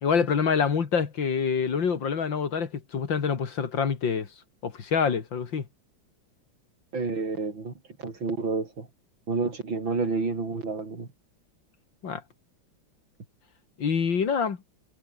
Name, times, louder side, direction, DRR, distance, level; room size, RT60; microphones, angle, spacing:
voice 1, 0.0-4.3 4.6-5.6 12.0-12.2 13.8-14.6, left 6 dB, 70° left, 2.8 m, -26 dB
voice 2, 6.9-7.7 8.0-8.9 9.3-11.1, right 4 dB, 75° right, 5.1 m, -29 dB
omnidirectional pair, 2.1 m